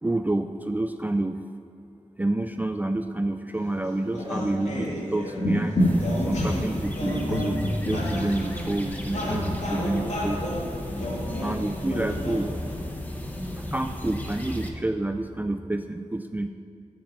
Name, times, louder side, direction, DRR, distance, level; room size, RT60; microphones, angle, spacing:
voice 1, 0.0-1.4 2.2-5.8 6.3-10.4 11.4-12.5 13.6-16.5, right 2 dB, 15° right, 7 dB, 0.4 m, -28 dB
sound 1, 3.5-12.8, left 1 dB, 70° left, 2.3 m, -29 dB
sound 2, 5.8-14.7, left 1 dB, 15° left, 1.2 m, -34 dB
8.6 x 8.2 x 7.5 m, 2.6 s
wide cardioid pair, 80°, 12 cm